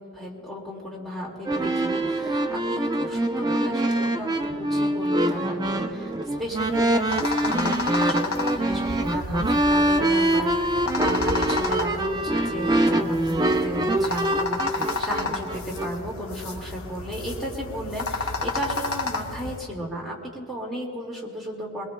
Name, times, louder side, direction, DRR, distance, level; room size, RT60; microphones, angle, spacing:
voice 1, 0.0-21.8, equal, ahead, -4 dB, 2.1 m, -34 dB
sound 1, 1.4-15.9, right 1 dB, 20° right, 0.5 m, -24 dB
sound 2, 6.4-19.6, left 3 dB, 70° left, 1.0 m, -32 dB
22.0 x 21.5 x 2.2 m, 2.4 s
head